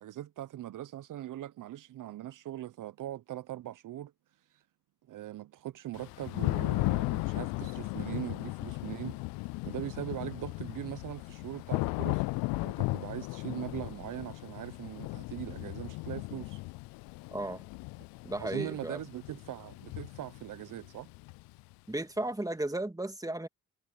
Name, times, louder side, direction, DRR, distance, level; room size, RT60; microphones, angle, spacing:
voice 1, 0.0-4.1 4.5-4.6 5.1-9.2 9.7-12.3 12.5-16.6 18.4-21.1, right 13 dB, 65° right, 0.8 m, -41 dB
Thunder / Rain, 5.9-21.7, left 24 dB, 80° left, 0.5 m, -36 dB
voice 2, 17.3-17.6 18.2-19.0 21.9-23.5, right 1 dB, 10° right, 2.3 m, -34 dB
hypercardioid pair, 50°, 34 cm